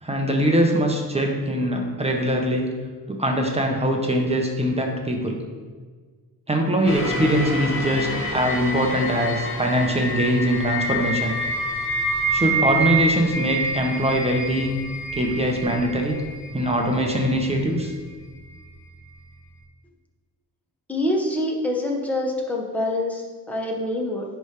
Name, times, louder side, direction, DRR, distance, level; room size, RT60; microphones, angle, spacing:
voice 1, 0.0-2.7 3.1-5.4 6.5-11.4 12.3-14.8 15.1-16.2 16.5-17.9, equal, 15° right, 1 dB, 1.1 m, -22 dB
sound 1, 6.8-17.9 18.5-18.6, right 1 dB, 30° left, 1.7 m, -27 dB
voice 2, 20.9-24.2, left 1 dB, 5° left, -1 dB, 1.3 m, -25 dB
10.0 x 3.5 x 5.0 m, 1.5 s
cardioid pair, 110°, 38 cm